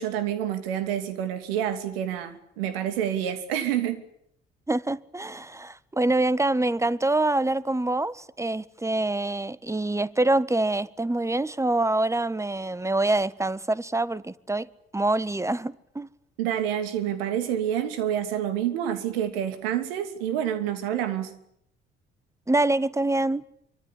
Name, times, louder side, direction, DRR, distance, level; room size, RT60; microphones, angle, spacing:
voice 1, 0.0-4.0 16.4-21.3, right 10 dB, 75° right, 2.8 m, -28 dB
voice 2, 4.7-14.7 14.9-16.1 22.5-23.4, right 2 dB, 10° right, 1.5 m, -25 dB
26.0 x 24.5 x 8.6 m
figure-of-eight pair, 45°, 30 cm